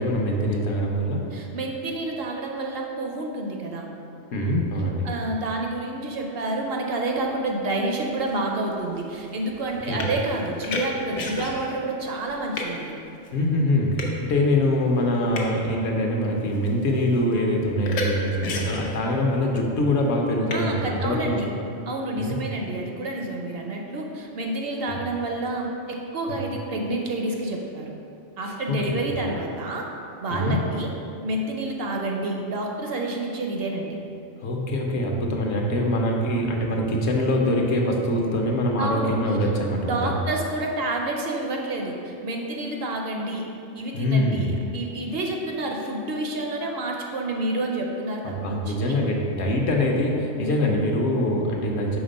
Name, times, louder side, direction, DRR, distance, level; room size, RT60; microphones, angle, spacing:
voice 1, 0.0-1.2 4.3-5.1 9.9-10.1 13.3-21.5 22.2-22.4 24.9-25.0 26.3-26.4 28.7-28.9 30.3-30.6 34.4-40.2 43.9-44.5 48.2-52.0, left 1 dB, 70° left, 0 dB, 1.0 m, -24 dB
voice 2, 1.3-3.9 5.0-12.9 20.5-21.5 21.9-27.9 28.4-29.9 30.2-30.9 31.2-34.0 38.8-39.5 39.8-43.4 43.7-49.0, right 2 dB, 60° right, 1 dB, 0.8 m, -29 dB
sound 1, 7.8-7.9 8.2-11.8 12.1-12.8 13.2-13.3 14.0-14.2 15.0-15.6 16.3-16.7 17.0-17.3 17.8-18.1 18.4-19.2 20.5-20.6, left 3 dB, 85° left, 1.1 m, -32 dB
5.1 x 3.6 x 5.1 m, 2.7 s
omnidirectional pair, 1.2 m